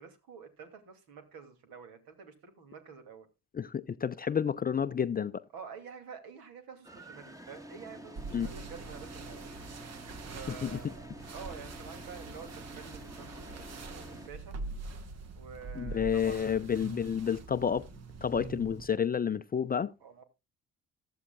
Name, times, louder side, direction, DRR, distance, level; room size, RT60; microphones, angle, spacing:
voice 1, 0.0-3.3 5.5-9.4 9.7-10.0 10.3-11.0 11.3-14.6 15.3-16.6 20.0-20.2, right 6 dB, 60° right, 2.6 m, -49 dB
voice 2, 3.5-5.4 8.3-8.5 10.5-10.8 15.7-17.9 18.2-19.9, left 7 dB, 25° left, 0.6 m, -30 dB
sound 1, 6.8-14.3, right 1 dB, 10° right, 1.4 m, -49 dB
sound 2, 8.2-18.9, right 4 dB, 40° right, 1.3 m, -44 dB
15.5 x 12.0 x 2.3 m
figure-of-eight pair, 50°, 39 cm